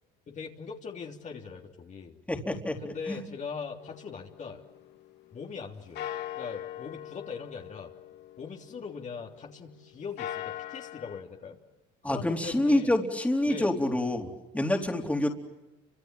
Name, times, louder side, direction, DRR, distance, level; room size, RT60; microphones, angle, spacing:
voice 1, 0.3-2.2 2.8-4.6 5.3-6.1 6.3-7.9 8.4-11.6 12.0-12.9 13.5-13.7, left 5 dB, 35° left, 1 dB, 3.3 m, -41 dB
voice 2, 2.3-3.2 12.0-15.3, left 1 dB, 5° left, 2 dB, 3.9 m, -27 dB
sound 1, 3.8-5.6 6.0-9.5 10.0-11.2, left 11 dB, 60° left, 2.1 m, -41 dB
30.0 x 26.0 x 7.6 m, 1.0 s
supercardioid pair, 100°, 20 cm